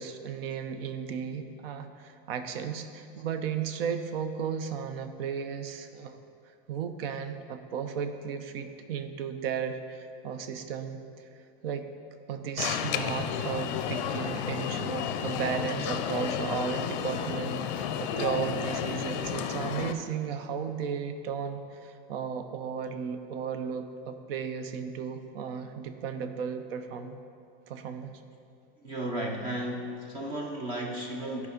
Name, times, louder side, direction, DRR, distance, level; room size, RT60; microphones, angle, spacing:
voice 1, 0.0-6.2 6.7-11.3 11.6-11.9 12.3-27.2 27.7-28.1, right 7 dB, 80° right, 9 dB, 0.7 m, -35 dB
Alarm, 12.6-19.9, left 9 dB, 50° left, 0.5 m, -32 dB
voice 2, 28.8-31.5, right 1 dB, 20° right, 1 dB, 0.3 m, -34 dB
11.0 x 4.8 x 5.1 m, 2.4 s
supercardioid pair, 180°, 29 cm